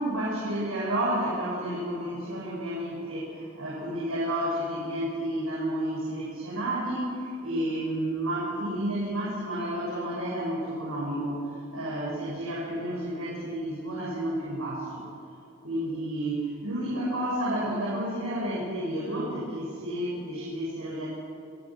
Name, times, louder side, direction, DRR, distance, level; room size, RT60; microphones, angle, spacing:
voice 1, 0.0-11.4 11.7-15.0 15.6-21.0, right 1 dB, 80° right, -6 dB, 6.9 m, -31 dB
28.5 x 16.5 x 6.3 m, 2.7 s
head